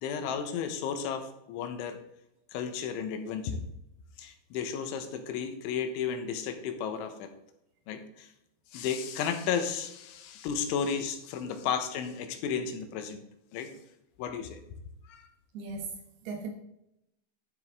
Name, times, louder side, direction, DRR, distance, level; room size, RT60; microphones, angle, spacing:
voice 1, 0.0-2.0 2.5-3.6 4.2-7.3 7.9-8.3 8.7-13.2 13.5-13.7 14.2-14.6 15.1-15.3, left 7 dB, 85° left, 3.5 m, -33 dB
voice 2, 15.5-16.5, right 4 dB, 70° right, 2.9 m, -39 dB
12.0 x 7.7 x 3.7 m
omnidirectional pair, 5.4 m